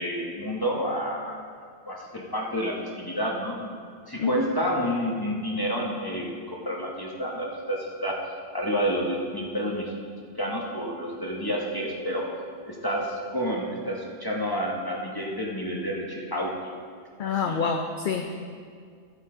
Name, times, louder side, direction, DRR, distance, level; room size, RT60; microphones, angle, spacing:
voice 1, 0.0-1.4 1.9-3.8 4.1-8.2 8.5-9.9 10.4-12.3 12.6-16.5 17.2-17.6, equal, 20° left, -3 dB, 1.2 m, -29 dB
voice 2, 17.2-18.3, left 5 dB, 55° left, 4 dB, 0.7 m, -27 dB
12.5 x 8.4 x 3.8 m, 2.1 s
omnidirectional pair, 1.2 m